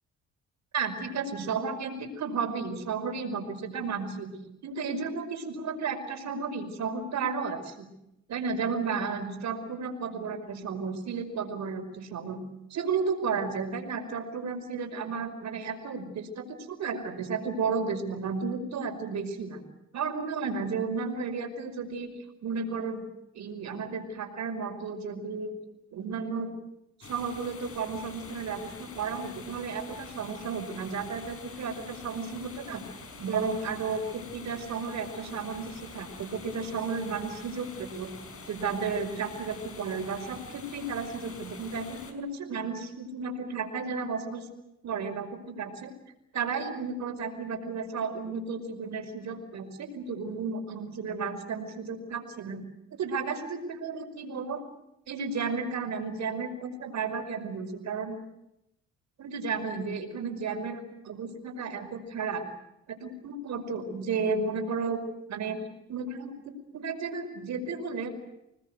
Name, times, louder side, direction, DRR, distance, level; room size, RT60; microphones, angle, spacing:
voice 1, 0.7-4.3 4.6-7.9 8.3-12.4 12.7-19.6 19.9-22.1 22.4-23.0 23.3-25.5 25.9-26.5 27.0-32.8 33.2-38.1 38.5-44.5 44.8-45.9 46.3-54.6 55.1-58.2 59.2-62.5 62.9-65.0 65.3-65.6 65.9-68.1, right 5 dB, 65° right, 5 dB, 5.3 m, -33 dB
sound 1, 27.0-42.1, left 4 dB, 50° left, 5.3 m, -46 dB
27.0 x 19.5 x 8.0 m, 0.85 s
cardioid pair, 90°, 30 cm